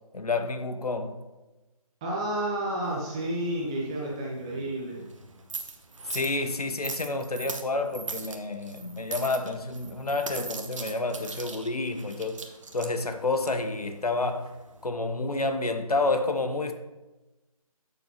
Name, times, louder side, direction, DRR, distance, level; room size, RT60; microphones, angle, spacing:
voice 1, 0.1-1.2 6.1-12.4 12.7-14.5 14.8-16.7, left 2 dB, 80° left, 1.1 m, -29 dB
voice 2, 2.0-5.1, right 1 dB, 10° right, 0.7 m, -31 dB
sound 1, 2.8-14.9, right 4 dB, 55° right, 1.0 m, -42 dB
11.5 x 6.9 x 3.0 m
figure-of-eight pair, 165°, 19 cm